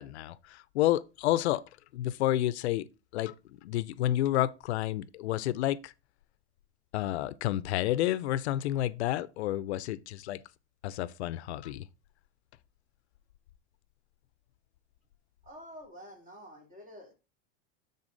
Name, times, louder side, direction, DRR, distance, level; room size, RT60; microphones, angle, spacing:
voice 1, 0.0-1.6 1.9-2.9 3.1-3.3 3.6-5.9 6.9-10.4 10.8-11.9, left 14 dB, 85° left, 0.5 m, -30 dB
voice 2, 15.4-17.1, equal, 25° right, 2.8 m, -48 dB
9.7 x 4.1 x 3.8 m
supercardioid pair, 120°, 32 cm